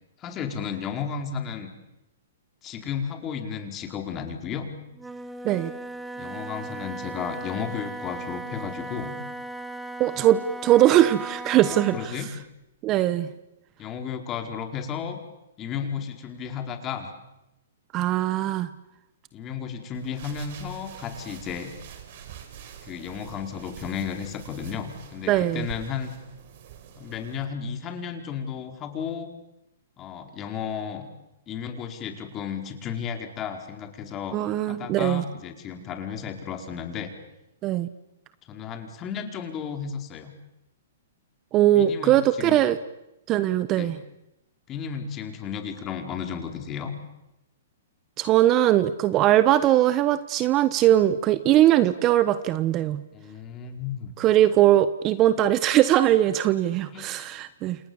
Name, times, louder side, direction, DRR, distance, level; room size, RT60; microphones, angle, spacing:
voice 1, 0.2-1.7 2.6-4.7 6.1-9.2 11.7-12.3 13.8-15.2 15.6-17.1 19.3-21.7 22.8-26.1 27.0-29.3 30.0-31.1 31.5-34.4 34.7-37.1 38.5-40.3 41.7-42.6 43.7-44.0 44.7-46.9 53.1-54.1 56.9-57.1, left 7 dB, 25° left, 5 dB, 4.8 m, -33 dB
Wind instrument woodwind instrument, 4.9-12.2, right 2 dB, 5° right, 1.8 m, -37 dB
voice 2, 10.0-12.1 12.8-13.3 17.9-18.7 25.3-25.7 34.3-35.2 37.6-37.9 41.5-42.8 43.3-43.9 48.2-53.0 54.2-57.8, right 13 dB, 30° right, 14 dB, 1.2 m, -20 dB
sound 1, 19.9-27.5, right 9 dB, 55° right, 4.8 m, -45 dB
29.0 x 27.5 x 7.3 m, 0.91 s
hypercardioid pair, 130°, 0 cm